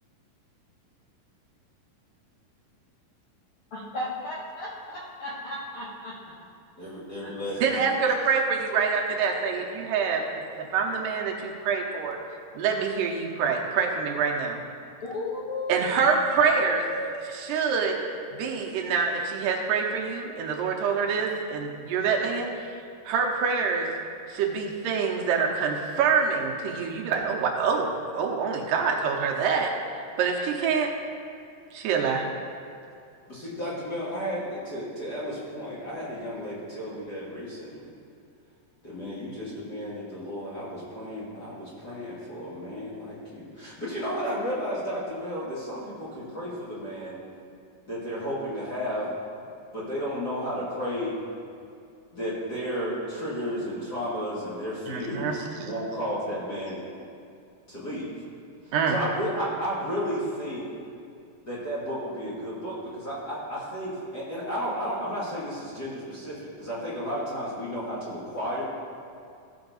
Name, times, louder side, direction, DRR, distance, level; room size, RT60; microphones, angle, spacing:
voice 1, 3.7-6.2 7.2-7.7 15.0-16.1 16.5-17.2, left 1 dB, 65° left, -7 dB, 1.4 m, -35 dB
voice 2, 6.8-7.9 33.3-37.9 38.8-47.2 47.9-49.1 49.7-51.2 52.1-56.8 57.7-58.1 58.6-60.7 61.4-68.6, equal, 40° left, -8 dB, 1.5 m, -33 dB
voice 3, 7.6-12.2 12.5-14.6 15.7-16.8 17.3-18.0 18.3-22.5 23.1-23.9 24.3-30.9 31.7-32.3 54.9-55.7 58.7-59.0, right 5 dB, 80° right, 0 dB, 2.5 m, -26 dB
15.0 x 5.8 x 4.0 m, 2.4 s
omnidirectional pair, 4.0 m